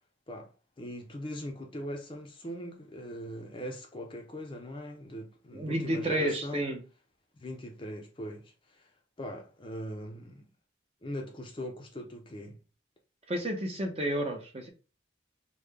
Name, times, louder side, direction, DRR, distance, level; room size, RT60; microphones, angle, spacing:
voice 1, 0.8-6.7 7.3-8.9 9.2-10.5 11.0-12.6, equal, 25° left, 0.5 m, -40 dB
voice 2, 5.5-6.8 13.3-14.7, right 1 dB, 30° right, 0.7 m, -31 dB
3.7 x 2.1 x 3.2 m
head